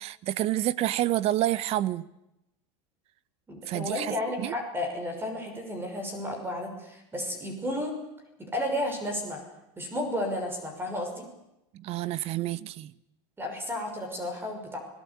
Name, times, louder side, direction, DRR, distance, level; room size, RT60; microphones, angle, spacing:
voice 1, 0.0-2.0 3.7-4.5 11.7-12.9, right 14 dB, 45° right, 1.0 m, -28 dB
voice 2, 3.5-7.9 8.4-9.4 9.8-11.3 13.4-14.8, left 1 dB, 15° right, 5.9 m, -32 dB
25.0 x 18.0 x 8.5 m
supercardioid pair, 130°, 15 cm